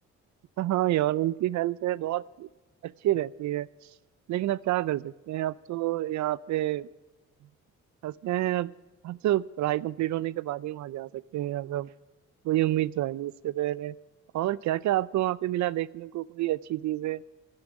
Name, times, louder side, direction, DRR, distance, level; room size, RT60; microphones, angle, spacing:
voice 1, 0.6-2.5 2.8-3.7 4.3-6.9 8.0-8.7 9.0-11.9 12.4-13.9 14.3-17.2, right 14 dB, 70° right, 21 dB, 0.5 m, -28 dB
11.5 x 11.0 x 7.7 m, 1.1 s
cardioid pair, 90°, 30 cm